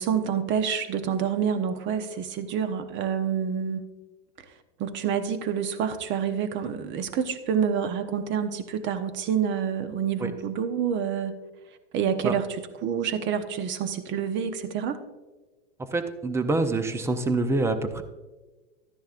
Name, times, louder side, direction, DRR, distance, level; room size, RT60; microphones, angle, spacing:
voice 1, 0.0-3.9 4.8-11.4 11.9-15.0, right 7 dB, 30° right, 10 dB, 0.9 m, -28 dB
voice 2, 15.9-18.0, right 2 dB, 5° right, 9 dB, 0.5 m, -26 dB
12.5 x 10.0 x 2.5 m, 1.2 s
hypercardioid pair, 125°, 36 cm